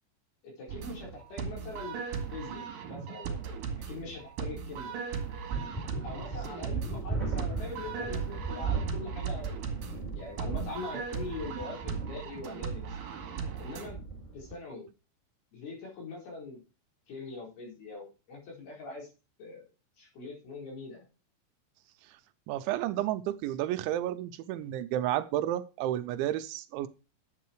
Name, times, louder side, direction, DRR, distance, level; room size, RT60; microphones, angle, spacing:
voice 1, 0.7-2.0 2.3-3.4 3.9-4.9 6.0-9.5 10.2-12.9 13.6-14.0 14.3-14.8 15.5-16.6 17.1-19.1 19.4-19.7 20.0-21.0, left 3 dB, 55° left, -1 dB, 6.5 m, -42 dB
sound 1, 0.7-13.9, right 6 dB, 55° right, 3.2 m, -38 dB
sound 2, 5.5-14.5, right 4 dB, 10° right, 3.5 m, -37 dB
voice 2, 22.5-26.9, right 13 dB, 85° right, 11 dB, 3.0 m, -31 dB
11.0 x 8.4 x 4.7 m, 0.32 s
omnidirectional pair, 5.4 m